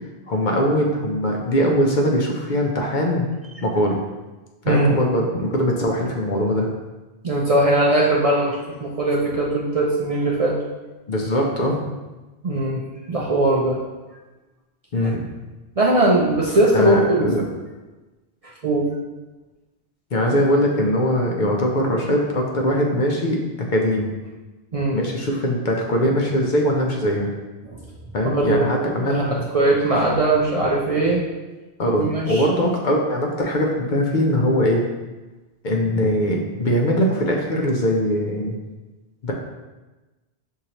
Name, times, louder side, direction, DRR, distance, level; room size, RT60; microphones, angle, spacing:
voice 1, 0.3-3.3 3.6-4.0 4.7-6.7 11.1-11.9 14.9-15.2 16.7-17.4 20.1-24.1 24.9-27.3 28.1-29.5 31.8-34.8 35.6-38.6 39.2-39.3, equal, 55° left, 0 dB, 0.7 m, -21 dB
voice 2, 7.2-10.6 12.4-12.8 13.1-13.8 15.0-15.1 15.8-17.5 18.6-18.9 24.7-25.0 27.6-27.8 28.3-28.8 29.1-29.2 29.5-31.2 32.0-32.4, right 2 dB, 50° right, -3 dB, 0.5 m, -20 dB
6.3 x 2.8 x 2.8 m, 1.2 s
omnidirectional pair, 1.1 m